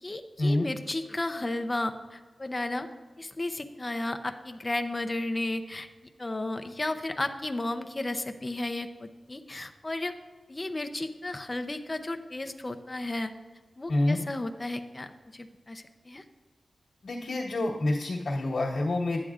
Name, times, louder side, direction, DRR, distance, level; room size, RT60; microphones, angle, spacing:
voice 1, 0.0-2.9 3.2-5.9 6.2-10.2 10.5-13.3 13.8-16.2, left 2 dB, 25° left, 8 dB, 0.5 m, -33 dB
voice 2, 13.9-14.2 17.0-19.2, left 2 dB, 80° left, -7 dB, 1.2 m, -27 dB
11.0 x 9.3 x 2.4 m, 1.3 s
wide cardioid pair, 115°, 0 cm